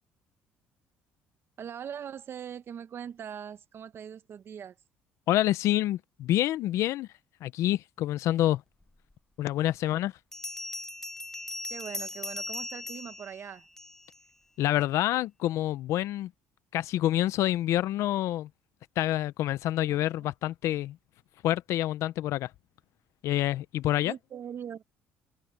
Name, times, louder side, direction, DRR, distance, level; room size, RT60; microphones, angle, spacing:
voice 1, 1.6-4.7 11.7-13.6 19.9-20.3 24.0-24.8, right 8 dB, 50° right, 1.3 m, -41 dB
voice 2, 5.3-7.1 7.4-8.6 9.4-10.1 14.6-16.3 16.7-18.5 19.0-21.0 21.4-22.5 23.2-24.1, left 14 dB, 70° left, 0.8 m, -27 dB
Bell, 9.1-9.2 10.3-14.2, left 1 dB, 10° left, 0.7 m, -39 dB
supercardioid pair, 75°, 5 cm